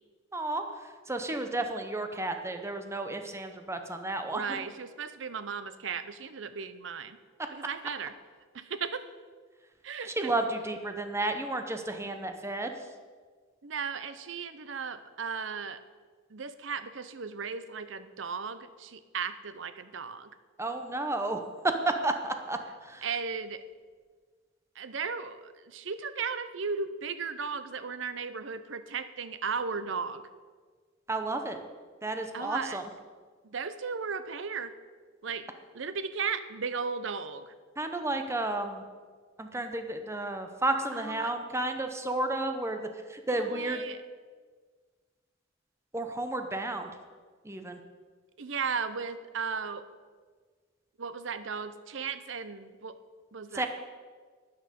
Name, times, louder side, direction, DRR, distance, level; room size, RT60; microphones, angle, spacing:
voice 1, 0.3-0.6 1.1-4.6 10.2-12.7 20.6-23.1 31.1-31.6 32.0-32.8 37.8-38.8 39.4-43.8 45.9-46.9 47.4-47.8 53.5-53.7, right 2 dB, 15° right, 6 dB, 0.8 m, -32 dB
voice 2, 4.3-7.2 7.5-8.1 8.5-9.1 9.8-10.3 13.6-15.8 16.3-20.3 23.0-23.6 24.8-30.2 32.3-32.8 33.4-34.8 35.2-35.5 35.7-37.5 40.9-41.3 43.3-44.0 48.4-49.9 51.0-53.0 53.3-53.7, right 5 dB, 65° right, 12 dB, 0.7 m, -36 dB
12.5 x 9.0 x 5.2 m, 1.5 s
head